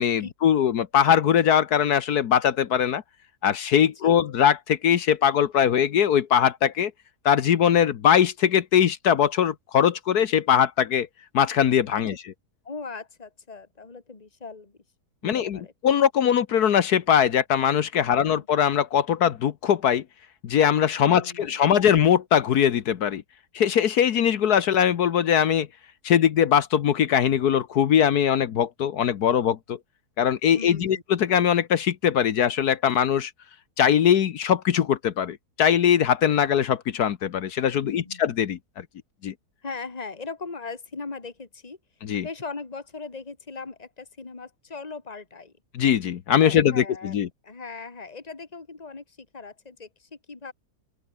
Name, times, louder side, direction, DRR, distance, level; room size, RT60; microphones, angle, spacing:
voice 1, 0.0-3.0 3.4-6.9 7.2-11.1 11.3-12.1 15.2-20.0 20.4-23.2 23.5-25.7 26.0-29.8 30.2-33.3 33.8-38.8 39.2-39.3 42.0-42.3 45.7-47.3, left 9 dB, 75° left, 1.5 m, -21 dB
voice 2, 3.8-4.2 12.6-14.8 15.2-15.7 21.0-21.9 30.5-31.0 37.8-38.2 39.6-41.8 42.2-45.5 46.4-47.2 47.4-50.5, left 4 dB, 25° left, 2.2 m, -39 dB
open air
omnidirectional pair, 1.7 m